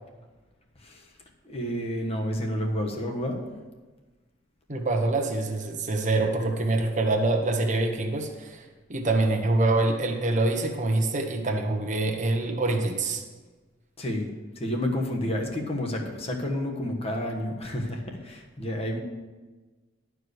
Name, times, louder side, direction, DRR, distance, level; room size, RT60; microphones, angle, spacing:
voice 1, 1.4-3.5 11.8-11.9 14.0-19.0, left 1 dB, 30° left, 1 dB, 1.3 m, -30 dB
voice 2, 4.7-8.6 8.9-13.2, right 2 dB, 40° right, 3 dB, 1.1 m, -25 dB
11.5 x 4.7 x 6.6 m, 1.3 s
head